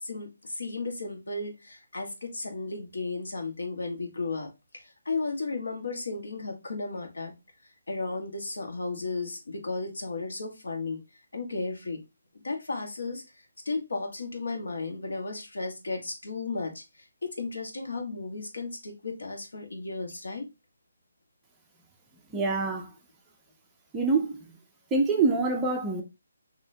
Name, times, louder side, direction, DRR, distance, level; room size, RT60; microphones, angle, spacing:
voice 1, 0.0-7.3 7.9-11.0 11.3-12.0 12.4-13.2 13.6-20.4, left 3 dB, 90° left, 1.4 m, -34 dB
voice 2, 22.3-22.9 23.9-24.5 24.9-26.0, right 3 dB, 5° right, 0.3 m, -25 dB
5.3 x 2.8 x 2.7 m
hypercardioid pair, 180°, 0 cm